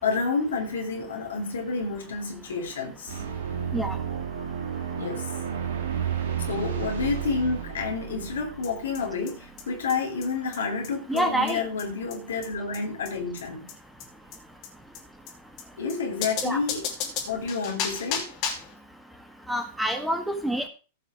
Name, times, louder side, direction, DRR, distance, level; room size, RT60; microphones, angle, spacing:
voice 1, 0.0-3.2 4.9-5.3 6.5-13.7 15.8-16.9 17.3-18.3, left 4 dB, 70° left, 3.0 m, -29 dB
sound 1, 3.1-9.7, right 8 dB, 60° right, 2.5 m, -32 dB
sound 2, 8.6-8.7 8.9-9.0 9.3-9.4 9.6-9.7 9.9-10.0 10.2-10.3 10.5-10.6 10.8-10.9 11.2-11.3 11.5-11.6 11.8-11.9 12.1-12.2 12.4-12.5 12.7-12.8 13.1-13.2 13.4-13.5 13.7-13.8 14.0-14.1 14.3-14.4 14.6-14.7 14.9-15.0 15.3-15.4 15.6-15.7 15.9-16.0 16.2-18.7, left 7 dB, 45° left, 3.0 m, -33 dB
voice 2, 11.1-11.6 16.4-16.6 19.5-20.7, right 1 dB, 5° right, 1.6 m, -27 dB
15.5 x 5.5 x 4.9 m
figure-of-eight pair, 100°, 0 cm